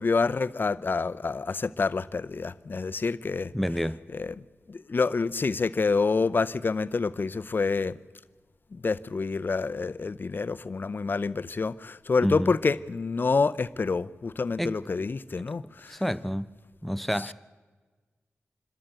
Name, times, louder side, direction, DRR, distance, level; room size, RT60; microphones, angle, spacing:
voice 1, 0.0-3.5 4.1-4.3 4.7-7.9 8.7-16.0, left 4 dB, 50° left, 0.6 m, -27 dB
voice 2, 3.5-4.0 12.2-12.5 14.6-14.8 15.9-16.5 16.8-17.3, equal, 5° left, 0.6 m, -28 dB
26.0 x 13.0 x 8.0 m
cardioid pair, 60°, 4 cm